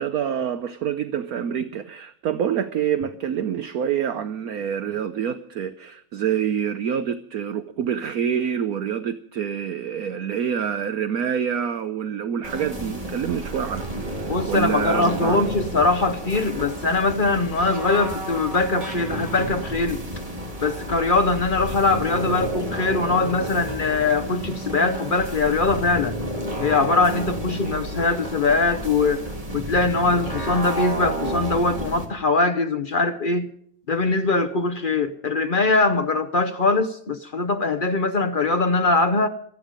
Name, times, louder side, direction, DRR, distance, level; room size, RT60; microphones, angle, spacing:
voice 1, 0.0-15.4, right 8 dB, 60° right, 1.0 m, -27 dB
sound 1, 12.4-32.1, right 1 dB, 15° right, 3.0 m, -31 dB
voice 2, 14.3-20.0 20.6-26.2 26.6-29.2 29.5-33.5 33.9-39.3, left 3 dB, 70° left, 0.4 m, -22 dB
26.5 x 9.2 x 5.2 m
omnidirectional pair, 2.2 m